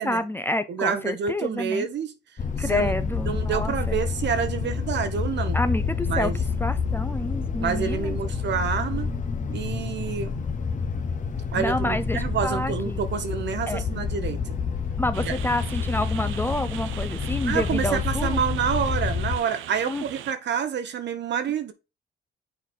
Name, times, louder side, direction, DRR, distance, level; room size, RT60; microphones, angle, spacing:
voice 1, 0.0-1.9 2.6-3.9 5.5-6.3 6.6-8.2 11.5-13.0 13.7-13.8 15.0-18.4 19.9-20.0, left 1 dB, 10° left, 0.6 m, -28 dB
voice 2, 0.7-2.1 2.7-2.9 3.3-5.6 6.1-6.4 7.6-9.1 9.5-10.3 11.5-14.4 15.3-15.4 17.4-21.7, right 7 dB, 65° right, 1.2 m, -28 dB
sound 1, 2.4-19.4, left 5 dB, 40° left, 1.0 m, -28 dB
sound 2, 15.1-20.3, right 12 dB, 85° right, 0.6 m, -40 dB
6.8 x 4.2 x 4.3 m
cardioid pair, 90°, 20 cm